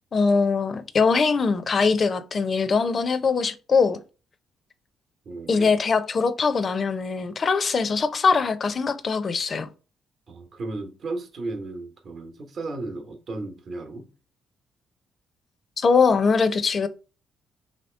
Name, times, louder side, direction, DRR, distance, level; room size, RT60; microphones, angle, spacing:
voice 1, 0.1-4.0 5.5-9.7 15.8-16.9, left 4 dB, 45° left, 0.5 m, -22 dB
voice 2, 5.2-5.8 10.3-14.1, right 2 dB, 55° right, 0.9 m, -35 dB
3.0 x 2.8 x 4.3 m
cardioid pair, 90°, 0 cm